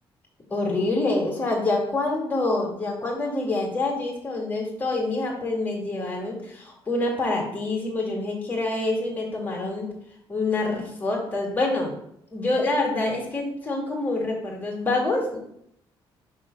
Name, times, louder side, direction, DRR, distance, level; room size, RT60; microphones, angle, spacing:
voice 1, 0.5-9.9 10.3-11.9 12.3-15.4, left 2 dB, 20° left, -1 dB, 1.9 m, -26 dB
5.8 x 3.5 x 5.1 m, 0.73 s
cardioid pair, 135°, 9 cm